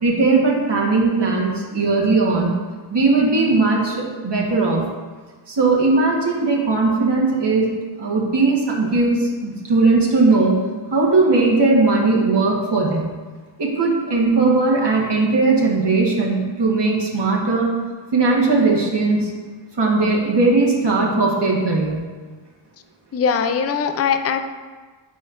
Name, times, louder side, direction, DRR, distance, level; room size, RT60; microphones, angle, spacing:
voice 1, 0.0-2.5 2.9-4.8 5.5-7.7 8.0-10.6 10.9-13.1 13.6-17.7 18.1-19.3 19.8-22.0, right 3 dB, 60° right, -3 dB, 1.4 m, -18 dB
voice 2, 23.1-24.4, left 6 dB, 35° left, 8 dB, 0.4 m, -20 dB
10.0 x 4.2 x 2.5 m, 1.4 s
wide cardioid pair, 65°, 47 cm